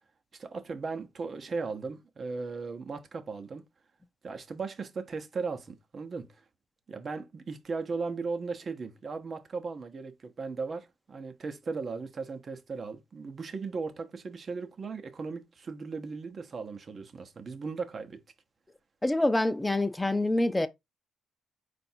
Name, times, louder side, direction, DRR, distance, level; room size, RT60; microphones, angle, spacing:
voice 1, 0.3-3.6 4.2-6.4 6.9-18.2, right 4 dB, 40° right, 0.9 m, -37 dB
voice 2, 19.0-20.7, left 2 dB, 10° left, 0.6 m, -26 dB
4.6 x 2.6 x 4.4 m
cardioid pair, 90°, 0 cm